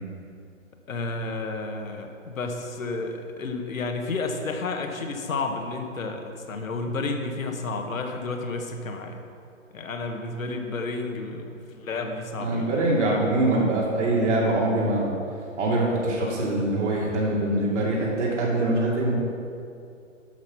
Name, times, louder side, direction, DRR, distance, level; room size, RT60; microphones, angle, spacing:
voice 1, 0.9-9.3 9.7-13.3, left 3 dB, 80° left, 4 dB, 1.5 m, -31 dB
voice 2, 12.4-15.1 15.6-19.1, right 2 dB, 60° right, -5 dB, 2.7 m, -23 dB
12.0 x 6.0 x 5.9 m, 2.5 s
hypercardioid pair, 155°, 40 cm